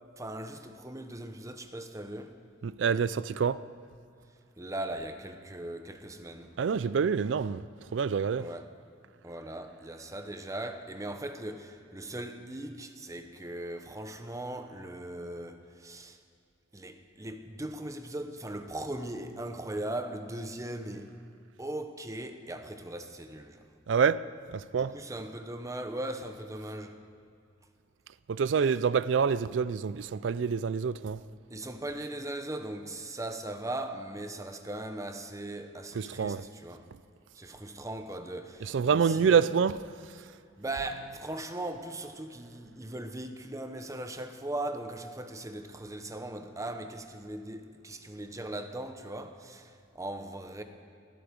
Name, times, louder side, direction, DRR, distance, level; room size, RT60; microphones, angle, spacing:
voice 1, 0.2-2.3 4.6-6.5 8.4-8.7 9.2-16.2 16.7-21.1 21.6-23.6 24.7-27.0 31.5-36.9 37.3-39.4 40.2-40.3 40.6-50.6, right 1 dB, 20° right, 0.9 m, -39 dB
voice 2, 2.6-3.6 6.6-7.6 7.9-8.5 23.9-25.0 28.3-31.2 36.0-36.5 38.7-39.8, right 6 dB, 80° right, 0.4 m, -27 dB
19.5 x 12.5 x 5.2 m
head